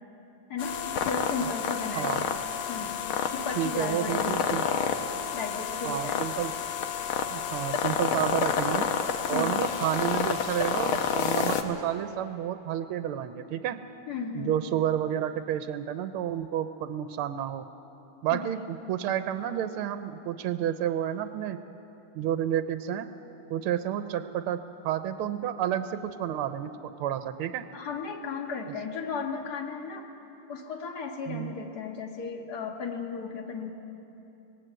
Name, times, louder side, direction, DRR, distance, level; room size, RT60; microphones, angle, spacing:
voice 1, 0.5-2.1 2.7-3.0 3.3-4.9 5.3-6.2 9.3-9.6 14.1-14.6 18.3-18.6 27.7-30.1 30.5-33.7, left 5 dB, 50° left, 3 dB, 2.0 m, -35 dB
sound 1, 0.6-11.6, left 7 dB, 75° left, 1.8 m, -29 dB
voice 2, 2.0-2.3 3.6-4.7 5.8-6.5 7.3-8.9 9.3-13.8 14.3-17.7 18.2-21.6 22.2-23.1 23.5-27.7 31.3-31.5, right 11 dB, 85° right, 10 dB, 1.6 m, -30 dB
19.0 x 18.5 x 8.0 m, 2.9 s
omnidirectional pair, 2.3 m